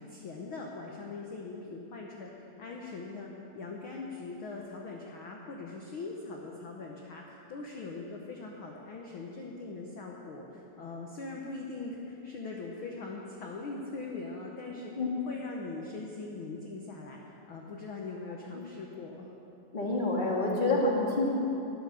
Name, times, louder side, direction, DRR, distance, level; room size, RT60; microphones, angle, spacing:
voice 1, 0.0-14.9 15.3-17.2 17.5-19.3, left 3 dB, 80° left, -1 dB, 1.1 m, -41 dB
voice 2, 19.7-21.4, left 2 dB, 20° left, -3 dB, 1.3 m, -28 dB
13.0 x 11.5 x 6.8 m, 3.0 s
omnidirectional pair, 3.9 m